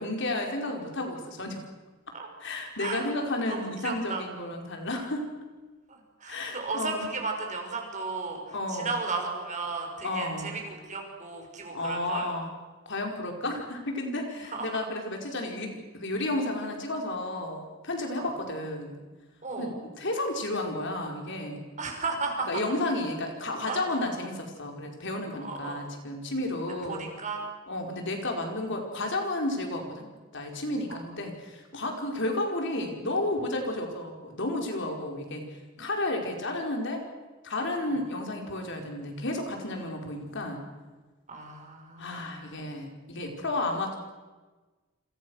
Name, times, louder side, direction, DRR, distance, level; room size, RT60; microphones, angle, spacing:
voice 1, 0.0-1.6 2.4-5.3 6.3-7.1 8.5-9.0 10.0-10.6 11.7-12.5 12.8-18.9 19.6-21.6 22.5-27.1 27.7-30.1 30.3-35.5 35.8-37.0 37.4-40.6 42.0-44.0, left 2 dB, 60° left, 2 dB, 5.0 m, -32 dB
voice 2, 3.5-4.2 5.9-12.3 14.5-14.8 18.2-18.3 19.4-19.7 21.8-22.5 23.7-23.8 24.1-24.3 25.4-25.8 26.9-27.4 30.9-31.0 37.9-38.0 41.3-42.4, right 4 dB, 35° right, 2 dB, 6.1 m, -35 dB
28.5 x 27.0 x 6.5 m, 1.3 s
head